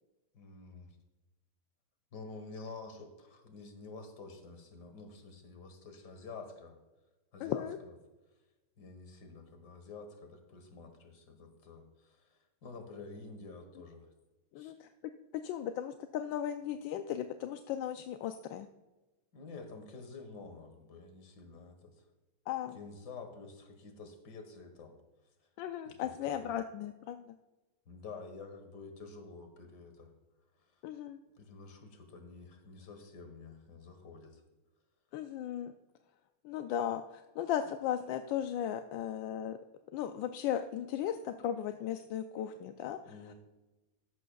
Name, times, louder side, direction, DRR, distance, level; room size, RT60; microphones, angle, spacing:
voice 1, 0.3-1.0 2.1-6.8 7.3-8.0 8.8-14.1 14.6-14.7 19.3-21.9 22.7-25.0 25.9-26.6 27.9-30.1 30.6-30.7 31.4-34.4 43.1-43.3, left 4 dB, 55° left, 6 dB, 1.9 m, -49 dB
voice 2, 7.4-7.8 14.5-14.9 15.3-18.7 22.5-22.8 25.6-27.3 30.8-31.2 35.1-35.7 36.4-39.6 39.9-43.3, left 10 dB, 75° left, 7 dB, 1.2 m, -36 dB
13.5 x 11.5 x 2.3 m, 1.1 s
omnidirectional pair, 2.3 m